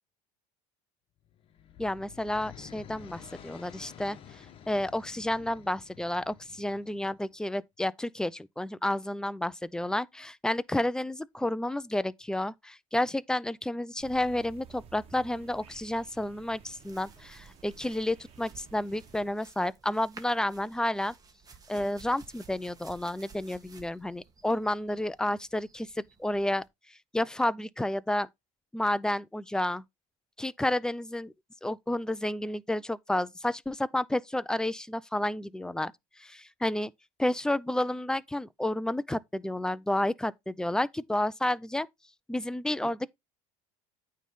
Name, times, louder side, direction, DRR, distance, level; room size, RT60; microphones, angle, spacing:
sound 1, 1.2-7.3, left 9 dB, 40° left, 1.1 m, -50 dB
voice 1, 1.8-21.1 21.7-25.9 26.2-26.6 27.1-28.3 28.7-29.8 30.4-31.3 31.6-35.9 36.2-36.9 37.2-41.9 42.3-43.1, left 1 dB, 5° left, 0.4 m, -31 dB
sound 2, 14.0-19.3, right 6 dB, 40° right, 1.8 m, -53 dB
sound 3, 16.7-26.7, right 5 dB, 25° right, 1.7 m, -55 dB
9.1 x 3.2 x 5.3 m
supercardioid pair, 125°, 15 cm